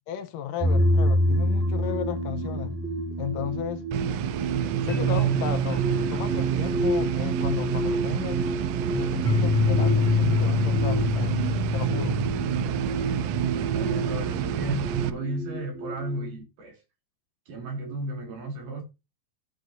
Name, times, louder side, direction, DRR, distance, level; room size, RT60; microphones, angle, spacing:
voice 1, 0.1-2.8 3.2-3.9 4.9-5.8 6.1-8.4 8.9-11.3 11.7-12.2, left 10 dB, 75° left, 2.2 m, -34 dB
sound 1, 0.6-16.2, left 1 dB, 5° right, 1.1 m, -26 dB
sound 2, 3.9-15.1, right 9 dB, 85° right, 1.7 m, -29 dB
voice 2, 13.4-16.8 17.5-18.8, right 1 dB, 65° right, 3.7 m, -34 dB
14.0 x 6.7 x 2.7 m
omnidirectional pair, 4.1 m